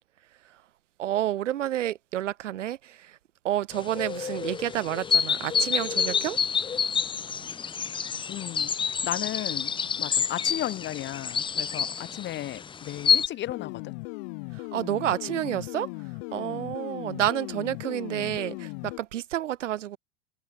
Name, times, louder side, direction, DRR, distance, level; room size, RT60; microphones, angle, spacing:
voice 1, 1.0-3.2 3.4-6.4 14.5-15.9 16.3-20.0, right 12 dB, 85° right, 2.5 m, -29 dB
sound 1, 3.7-13.3, left 6 dB, 15° left, 0.9 m, -28 dB
voice 2, 8.3-13.9 15.4-15.5, left 14 dB, 30° left, 1.6 m, -35 dB
sound 2, 13.5-19.0, left 31 dB, 50° left, 1.4 m, -38 dB
supercardioid pair, 130°, 36 cm